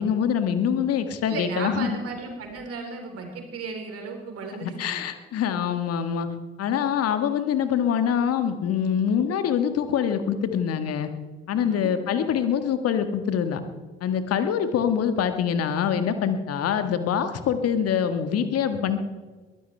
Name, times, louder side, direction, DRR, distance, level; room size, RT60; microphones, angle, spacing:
voice 1, 0.0-2.0 4.6-6.3 6.6-11.1 11.5-13.6 14.0-19.0, left 8 dB, 50° left, 9 dB, 1.6 m, -24 dB
voice 2, 1.3-5.0 11.6-11.9, right 4 dB, 50° right, 3 dB, 3.9 m, -35 dB
22.0 x 15.5 x 3.4 m, 1.3 s
figure-of-eight pair, 45°, 30 cm